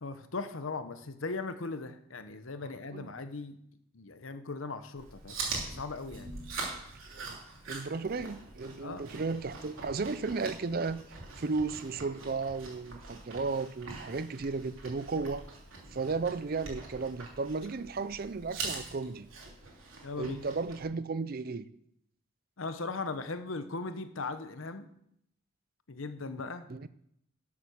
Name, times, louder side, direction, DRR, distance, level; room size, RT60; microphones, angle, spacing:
voice 1, 0.0-3.6 3.9-5.4 5.6-6.3 8.8-9.1 20.0-20.4 22.6-24.9 25.9-26.7, left 3 dB, 75° left, 1.0 m, -38 dB
Chewing mastication, 5.0-20.8, right 3 dB, 80° right, 3.1 m, -43 dB
voice 2, 7.7-11.0 11.4-15.5 15.9-19.3 20.2-21.7 26.7-26.9, right 4 dB, 45° right, 0.5 m, -34 dB
12.5 x 7.4 x 6.3 m
head